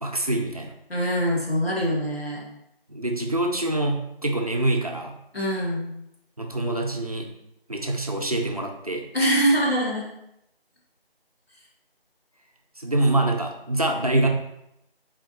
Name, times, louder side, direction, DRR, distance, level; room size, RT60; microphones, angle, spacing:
voice 1, 0.0-0.7 2.9-5.1 6.4-7.3 7.7-9.0 12.8-14.3, right 1 dB, 40° right, 2 dB, 0.7 m, -25 dB
voice 2, 0.9-2.4 5.3-5.9 9.1-10.1, equal, 75° left, -3 dB, 2.2 m, -23 dB
7.8 x 4.3 x 3.0 m, 0.81 s
figure-of-eight pair, 170°, 30 cm